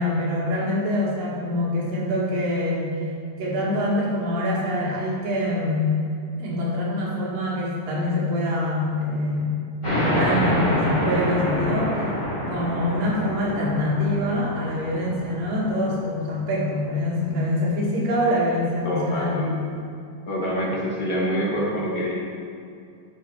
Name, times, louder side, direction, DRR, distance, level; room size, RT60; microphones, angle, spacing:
voice 1, 0.0-3.0 3.4-6.0 6.4-12.1 12.5-19.5 21.5-21.6, left 1 dB, 90° right, -5 dB, 3.6 m, -25 dB
sound 1, 9.8-17.0, equal, 10° left, 2.1 m, -27 dB
voice 2, 18.8-19.7 20.3-22.1, equal, 40° left, -5 dB, 1.5 m, -26 dB
11.0 x 6.6 x 4.6 m, 2.4 s
omnidirectional pair, 3.8 m